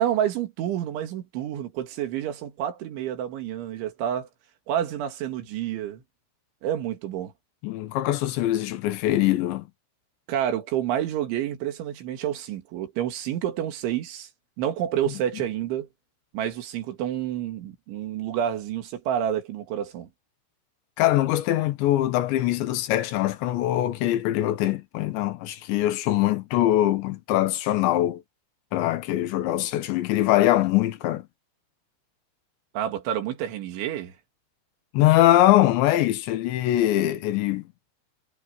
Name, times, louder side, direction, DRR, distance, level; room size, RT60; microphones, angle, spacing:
voice 1, 0.0-4.3 4.7-6.0 6.6-7.3 10.3-14.3 14.6-15.9 16.3-20.1 32.7-34.1, right 10 dB, 80° right, 4.7 m, -29 dB
voice 2, 7.6-9.7 21.0-28.2 28.7-31.3 34.9-37.6, left 14 dB, 75° left, 3.4 m, -22 dB
omnidirectional pair, 5.4 m